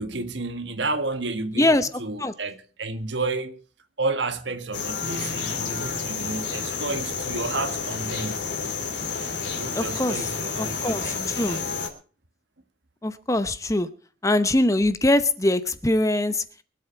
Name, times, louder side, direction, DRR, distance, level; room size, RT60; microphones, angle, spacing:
voice 1, 0.0-1.7 2.0-3.6 4.0-8.4 9.5-11.6, right 3 dB, 80° right, 1.6 m, -31 dB
voice 2, 1.6-1.9 2.2-2.3 9.7-10.2 10.6-11.6 13.0-13.9 14.2-16.4, left 1 dB, 15° left, 0.9 m, -22 dB
sound 1, 4.7-11.9, left 5 dB, 80° left, 3.2 m, -30 dB
sound 2, 5.0-10.6, equal, 20° right, 1.0 m, -46 dB
24.5 x 8.2 x 4.4 m
head